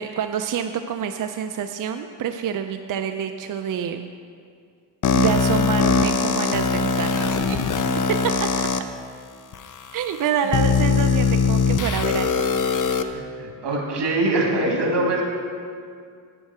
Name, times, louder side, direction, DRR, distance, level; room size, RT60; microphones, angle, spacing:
voice 1, 0.0-4.1 5.1-7.6 8.2-8.5 9.9-12.3, right 8 dB, 50° right, 7 dB, 0.5 m, -27 dB
sound 1, 5.0-8.8 9.5-9.6 10.5-13.0, left 5 dB, 50° left, 0.6 m, -21 dB
voice 2, 13.1-15.2, right 2 dB, 80° right, 0 dB, 2.2 m, -23 dB
9.9 x 9.7 x 4.8 m, 2.2 s
wide cardioid pair, 145°, 41 cm